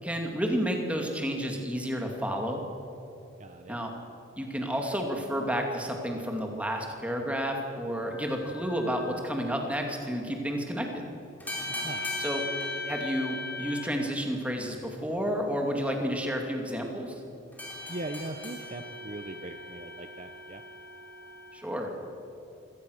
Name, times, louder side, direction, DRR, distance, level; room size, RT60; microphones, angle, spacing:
voice 1, 0.0-2.6 3.7-3.9 4.4-11.0 12.2-12.4 12.9-17.2 21.5-21.9, equal, 5° right, 2 dB, 2.5 m, -31 dB
voice 2, 3.4-3.8 11.7-12.1 17.9-20.6, right 2 dB, 35° right, 7 dB, 0.8 m, -40 dB
sound 1, 8.1-9.2 11.4-13.9 17.5-21.5, left 2 dB, 10° left, 4.7 m, -38 dB
25.0 x 17.5 x 6.5 m, 2.8 s
head